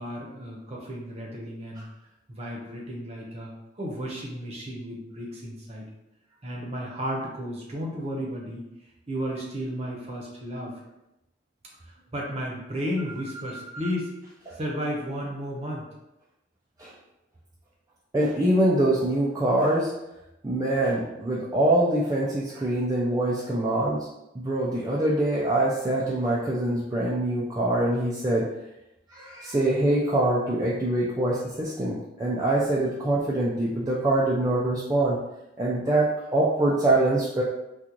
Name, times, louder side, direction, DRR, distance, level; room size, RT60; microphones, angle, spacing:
voice 1, 0.0-1.9 2.3-3.5 3.8-5.8 6.4-8.7 9.1-10.8 11.8-14.1 14.5-15.8, equal, 35° right, -2 dB, 0.8 m, -33 dB
voice 2, 18.1-19.9 20.4-24.1 24.3-28.5 29.1-35.2 35.6-37.4, right 1 dB, 20° right, -5 dB, 0.4 m, -24 dB
3.7 x 2.4 x 2.9 m, 0.89 s
head